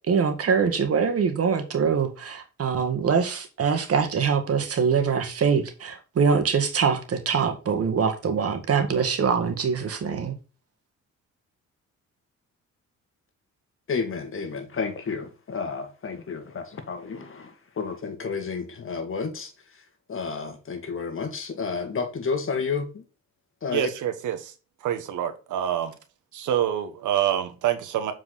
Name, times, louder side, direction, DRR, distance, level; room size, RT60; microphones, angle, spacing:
voice 1, 0.1-10.3, right 6 dB, 50° right, 1.9 m, -23 dB
voice 2, 13.9-19.8 20.1-23.0 23.6-23.9, left 5 dB, 45° left, 1.9 m, -31 dB
voice 3, 23.7-24.5 24.8-25.9 26.3-28.1, right 10 dB, 80° right, 1.3 m, -26 dB
7.4 x 4.8 x 4.0 m
cardioid pair, 90°, 30 cm